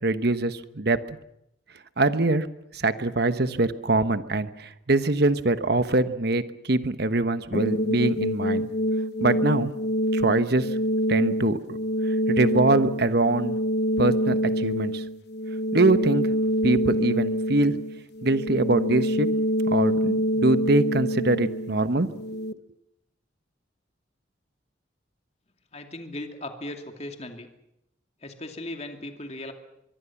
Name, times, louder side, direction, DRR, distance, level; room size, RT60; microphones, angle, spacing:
voice 1, 0.0-1.2 2.0-2.5 2.7-8.6 9.2-9.7 10.1-10.7 11.1-11.8 12.3-13.6 14.0-15.0 15.7-16.3 16.6-17.7 18.2-19.3 19.7-22.4, right 2 dB, 55° right, 11 dB, 1.2 m, -23 dB
sound 1, 7.5-22.5, equal, 60° left, 1.1 m, -26 dB
voice 2, 25.7-27.5 28.2-29.5, left 1 dB, 35° left, 5 dB, 2.5 m, -37 dB
24.0 x 23.5 x 7.2 m, 0.82 s
head